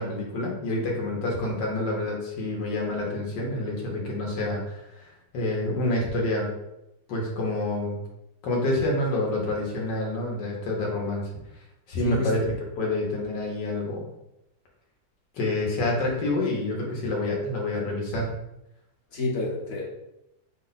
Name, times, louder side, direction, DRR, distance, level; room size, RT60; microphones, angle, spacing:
voice 1, 0.0-4.8 5.3-6.5 7.1-8.0 8.4-11.3 11.9-14.0 15.3-18.3, left 2 dB, 80° left, -2 dB, 1.5 m, -27 dB
voice 2, 12.0-12.5 19.1-19.8, left 2 dB, 45° left, -2 dB, 0.9 m, -28 dB
5.1 x 2.2 x 3.9 m, 0.86 s
omnidirectional pair, 1.9 m